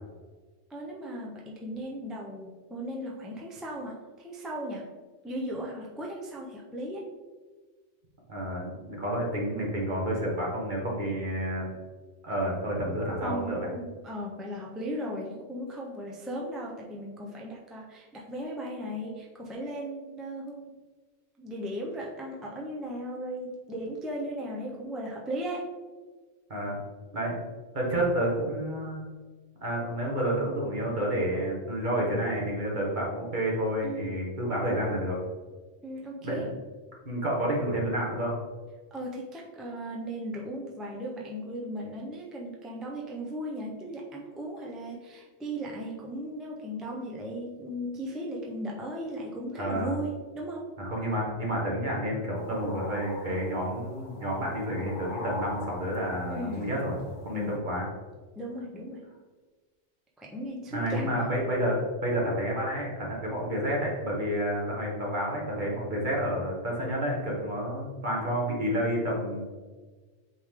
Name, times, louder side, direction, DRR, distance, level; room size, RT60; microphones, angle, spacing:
voice 1, 0.7-4.9 5.2-7.1 13.2-20.7 21.4-25.7 33.8-34.3 35.8-36.5 38.9-50.7 56.3-56.7 57.3-57.6 58.4-59.1 60.2-61.2, equal, ahead, -3 dB, 0.6 m, -37 dB
voice 2, 8.3-11.7 12.2-13.7 26.5-26.8 27.1-27.3 27.7-29.0 29.6-35.2 36.2-36.5 37.0-38.4 49.6-50.0 50.8-57.9 60.7-69.4, equal, 45° right, -3 dB, 1.6 m, -30 dB
sound 1, 52.4-57.6, left 2 dB, 50° left, 1.0 m, -42 dB
8.2 x 3.3 x 3.7 m, 1.4 s
omnidirectional pair, 1.2 m